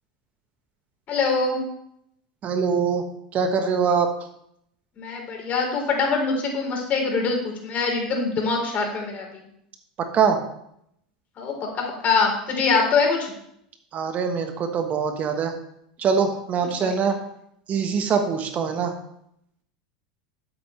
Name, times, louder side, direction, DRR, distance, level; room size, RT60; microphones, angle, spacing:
voice 1, 1.1-1.6 5.0-9.4 11.4-13.3 16.6-16.9, left 4 dB, 40° left, 1 dB, 3.9 m, -24 dB
voice 2, 2.4-3.0 3.3-4.1 10.0-10.4 13.9-15.5 16.0-17.1 17.7-18.9, right 6 dB, 40° right, 6 dB, 1.3 m, -23 dB
12.5 x 8.2 x 3.3 m, 0.74 s
hypercardioid pair, 95°, 4 cm